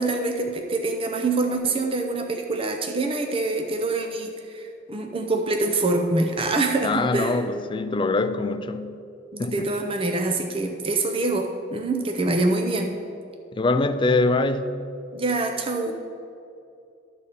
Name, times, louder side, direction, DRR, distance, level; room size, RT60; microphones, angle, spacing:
voice 1, 0.0-7.4 9.3-13.0 15.1-15.9, right 2 dB, 30° right, 0.6 m, -25 dB
voice 2, 6.8-9.0 9.4-9.7 13.5-14.8, left 3 dB, 25° left, 0.3 m, -24 dB
11.5 x 4.1 x 6.7 m
head